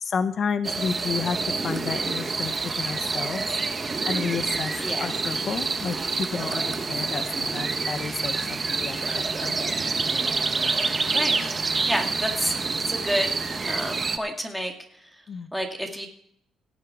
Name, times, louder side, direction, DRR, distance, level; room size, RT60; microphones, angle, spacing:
voice 1, 0.0-4.7 5.0-9.8 15.3-15.5, left 6 dB, 50° left, 10 dB, 0.8 m, -31 dB
sound 1, 0.6-14.2, right 4 dB, 30° right, 1.1 m, -27 dB
voice 2, 11.9-12.5 12.9-13.4 13.7-14.7 15.5-16.1, equal, ahead, 3 dB, 2.2 m, -29 dB
18.0 x 7.6 x 4.7 m, 0.69 s
cardioid pair, 90°, 0 cm